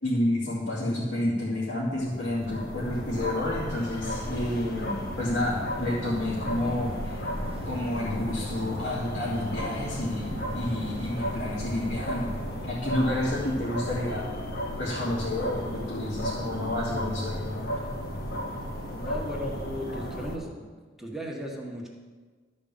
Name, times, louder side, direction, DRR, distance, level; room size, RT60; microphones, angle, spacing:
voice 1, 0.0-7.2 7.6-12.3 12.6-14.3 14.8-17.7, left 1 dB, 70° left, -9 dB, 2.6 m, -30 dB
sound 1, 1.8-20.4, equal, 55° left, 1.4 m, -34 dB
sound 2, 6.1-12.7, right 1 dB, 30° right, 0.8 m, -42 dB
voice 2, 19.0-20.7 21.0-21.9, equal, ahead, -2 dB, 1.5 m, -36 dB
12.5 x 5.2 x 7.1 m, 1.4 s
head